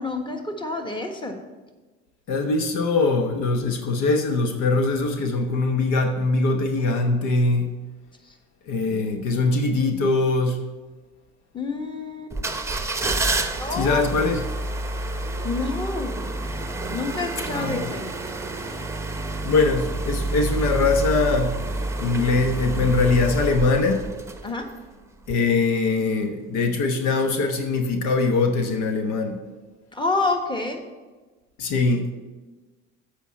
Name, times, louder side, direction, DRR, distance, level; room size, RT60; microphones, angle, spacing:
voice 1, 0.0-1.4 11.5-12.3 13.6-14.0 15.4-16.2 16.9-18.1 24.4-24.7 29.9-30.8, left 3 dB, 15° left, 4 dB, 1.5 m, -28 dB
voice 2, 2.3-7.7 8.7-10.6 13.7-14.4 17.5-17.9 19.4-21.6 22.0-24.0 25.3-29.4 31.6-32.1, left 3 dB, 70° left, 6 dB, 1.1 m, -22 dB
sound 1, 12.3-24.8 25.2-25.3, right 2 dB, 10° right, 0.9 m, -28 dB
8.2 x 5.0 x 7.4 m, 1.3 s
supercardioid pair, 75°, 31 cm